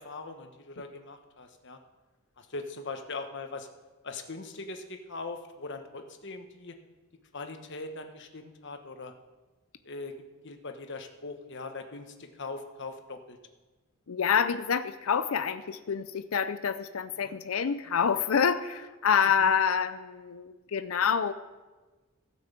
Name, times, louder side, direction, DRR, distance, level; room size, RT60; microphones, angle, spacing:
voice 1, 0.0-1.8 2.4-3.7 4.0-6.8 7.3-9.1 9.8-10.1 10.4-13.4 17.2-17.3 19.4-19.5, left 3 dB, 60° left, 6 dB, 1.2 m, -41 dB
voice 2, 14.1-21.3, left 7 dB, 75° left, 11 dB, 0.5 m, -27 dB
15.5 x 6.2 x 7.3 m, 1.2 s
head